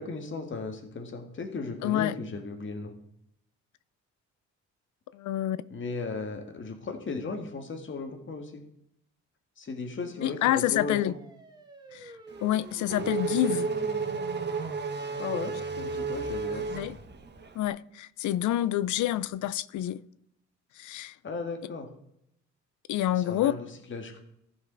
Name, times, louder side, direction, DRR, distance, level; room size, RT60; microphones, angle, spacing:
voice 1, 0.0-3.0 5.7-8.6 9.6-11.1 15.2-16.7 21.2-21.9 23.1-23.6 23.9-24.2, left 4 dB, 40° left, 1.7 m, -36 dB
voice 2, 1.8-2.2 5.1-5.6 10.2-11.1 11.9-12.1 12.4-13.7 16.5-17.0 17.5-20.0 20.8-21.2 22.9-23.5, left 13 dB, 75° left, 0.5 m, -28 dB
sound 1, 10.5-17.4, right 1 dB, 15° right, 1.5 m, -48 dB
Race car auto racing / Accelerating revving vroom, 12.3-17.6, right 4 dB, 35° right, 1.1 m, -32 dB
15.0 x 5.4 x 4.0 m
cardioid pair, 90°, 30 cm